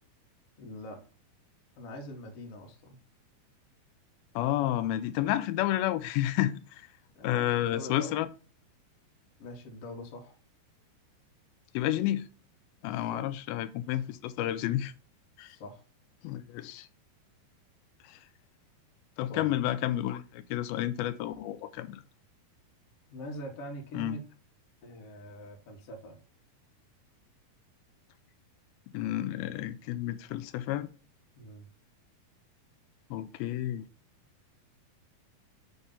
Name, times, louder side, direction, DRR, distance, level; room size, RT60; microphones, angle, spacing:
voice 1, 0.6-1.0 1.8-3.0 7.1-8.2 9.4-10.4 12.9-13.3 15.4-15.8 19.3-19.5 23.1-24.2 24.8-26.2 31.3-31.7, left 1 dB, 55° left, 1.8 m, -43 dB
voice 2, 4.4-6.9 7.2-8.3 11.7-12.3 12.8-14.9 15.4-15.6 16.2-16.9 18.0-18.2 19.2-22.0 23.9-24.2 28.9-30.9 33.1-33.8, left 13 dB, 80° left, 2.3 m, -31 dB
7.0 x 3.6 x 5.4 m
omnidirectional pair, 4.5 m